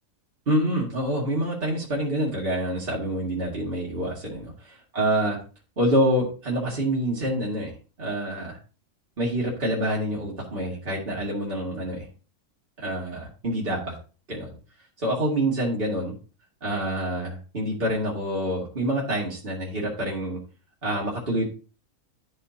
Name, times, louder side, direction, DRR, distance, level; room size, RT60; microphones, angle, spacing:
voice 1, 0.5-5.4 5.8-7.7 8.0-8.6 9.2-12.1 12.8-14.0 14.3-14.6 15.0-16.1 16.6-20.4 20.8-21.5, right 1 dB, 40° right, -5 dB, 2.3 m, -27 dB
11.5 x 6.2 x 2.8 m, 0.36 s
omnidirectional pair, 1.4 m